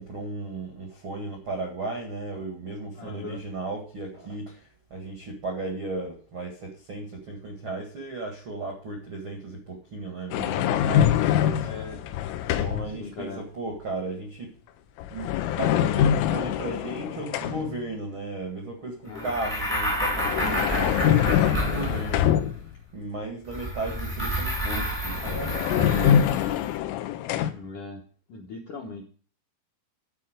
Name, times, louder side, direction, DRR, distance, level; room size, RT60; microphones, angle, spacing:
voice 1, 0.0-11.7 12.6-14.5 15.1-15.3 15.6-22.3 22.9-26.3, right 2 dB, 75° right, 1 dB, 1.1 m, -35 dB
voice 2, 3.0-3.4 11.6-12.0 13.0-13.4 19.0-19.3 27.5-28.0 28.3-29.0, left 4 dB, 70° left, -1 dB, 1.9 m, -39 dB
sound 1, 10.3-13.0 15.0-17.8 19.9-22.8 24.8-24.9 25.1-27.5, left 10 dB, 85° left, 3.4 m, -24 dB
sound 2, 19.1-22.4 23.5-26.6, right 1 dB, 10° right, 0.6 m, -30 dB
11.0 x 4.6 x 7.8 m, 0.42 s
omnidirectional pair, 5.6 m